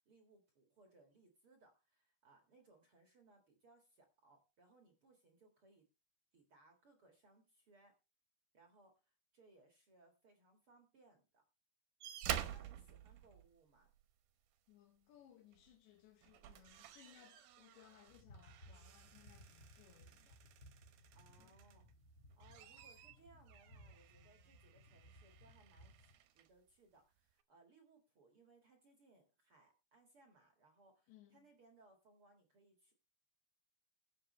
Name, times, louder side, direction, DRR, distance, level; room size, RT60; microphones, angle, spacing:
voice 1, 0.0-5.9 6.3-7.9 8.5-11.4 12.3-13.9 21.1-21.8 22.3-32.9, right 3 dB, 50° right, 1.8 m, -68 dB
sound 1, 12.0-14.0 15.5-15.7 16.1-21.9 22.3-26.5 27.4-27.5, right 11 dB, 70° right, 2.4 m, -49 dB
voice 2, 14.7-20.4 21.4-21.6 31.1-31.5, left 11 dB, 80° left, 3.6 m, -65 dB
sound 2, 18.1-26.1, left 1 dB, 45° left, 0.8 m, -62 dB
21.0 x 7.6 x 3.2 m
omnidirectional pair, 5.2 m